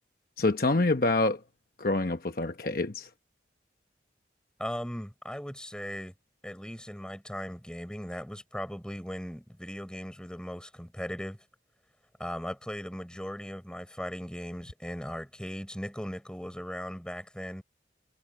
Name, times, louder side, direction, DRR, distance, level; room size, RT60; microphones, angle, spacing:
voice 1, 0.4-1.4 1.8-3.1, left 2 dB, 50° left, 1.0 m, -26 dB
voice 2, 4.6-6.1 6.4-11.4 12.2-17.6, equal, 5° left, 4.4 m, -38 dB
head